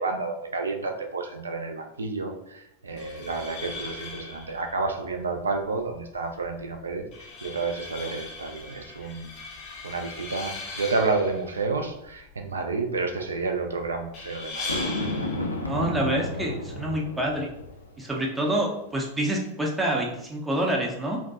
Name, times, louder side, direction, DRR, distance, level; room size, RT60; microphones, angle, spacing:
voice 1, 0.0-9.3 9.8-14.8, right 3 dB, 70° right, 4 dB, 0.3 m, -30 dB
sound 1, 2.9-17.9, left 3 dB, 40° left, 0.6 m, -41 dB
Boom, 14.7-18.0, left 1 dB, 85° left, 0.3 m, -32 dB
voice 2, 15.6-17.5 18.0-21.2, right 1 dB, 10° right, -1 dB, 0.5 m, -27 dB
2.5 x 2.2 x 2.4 m, 0.80 s
figure-of-eight pair, 90°, 0 cm